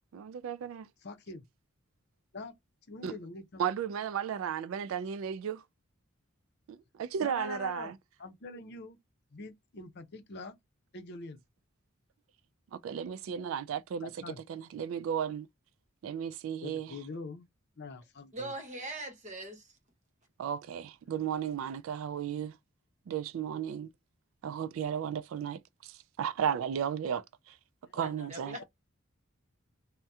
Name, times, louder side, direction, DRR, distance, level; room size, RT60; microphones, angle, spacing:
voice 1, 0.1-0.9 3.0-3.1 3.6-5.6 6.7-7.9 12.7-15.5 16.0-17.0 20.4-22.6 23.1-23.9 24.4-27.6 27.9-28.6, right 8 dB, 70° right, 0.3 m, -34 dB
voice 2, 1.0-1.5 2.3-2.5 2.9-3.7 7.2-7.9 8.2-9.0 9.3-10.6 10.9-11.4 14.0-14.4 16.6-17.5 17.8-18.5 27.8-28.3 28.6-28.7, left 3 dB, 55° left, 0.6 m, -44 dB
voice 3, 18.3-19.7 27.9-28.6, right 1 dB, 35° right, 0.9 m, -41 dB
2.7 x 2.1 x 3.4 m
head